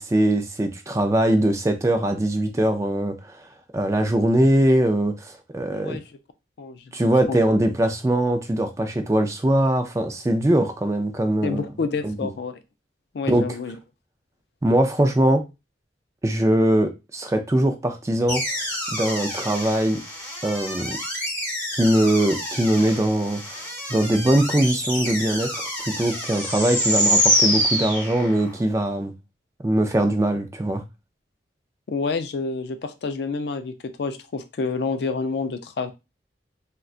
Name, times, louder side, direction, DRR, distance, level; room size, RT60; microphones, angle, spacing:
voice 1, 0.0-3.4 3.7-6.0 6.9-11.6 12.0-12.3 13.3-13.4 14.6-15.4 16.2-18.4 18.9-20.0 20.4-21.0 21.7-23.6 23.9-29.1 29.6-30.8, right 1 dB, 15° right, 0.3 m, -21 dB
voice 2, 5.7-6.0 6.6-7.4 11.4-12.6 13.1-13.7 31.9-35.9, left 4 dB, 65° left, 0.4 m, -29 dB
sound 1, 18.3-28.6, equal, 15° left, 0.9 m, -26 dB
3.7 x 2.2 x 2.4 m
head